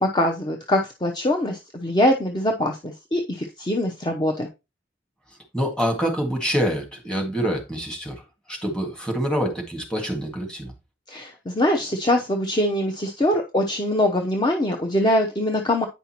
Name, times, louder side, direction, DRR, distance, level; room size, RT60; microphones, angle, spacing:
voice 1, 0.0-4.5 11.1-15.9, left 1 dB, 25° left, 0.7 m, -23 dB
voice 2, 5.5-8.2 8.5-10.7, equal, 5° left, 1.9 m, -26 dB
9.2 x 5.4 x 2.9 m
head